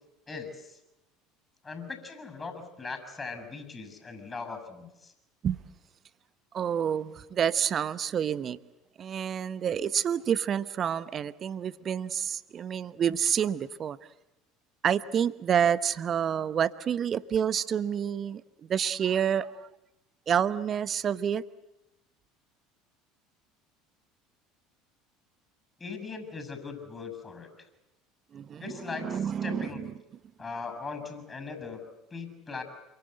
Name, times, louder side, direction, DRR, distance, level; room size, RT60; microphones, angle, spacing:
voice 1, 0.3-0.8 1.6-5.1 25.8-27.5 28.6-29.8 30.4-32.6, left 4 dB, 25° left, 8 dB, 6.8 m, -39 dB
voice 2, 6.5-8.6 9.0-14.0 14.8-19.7 20.3-21.4 28.3-29.9, right 8 dB, 40° right, 15 dB, 1.1 m, -28 dB
27.5 x 24.5 x 8.0 m, 0.93 s
figure-of-eight pair, 70°, 0 cm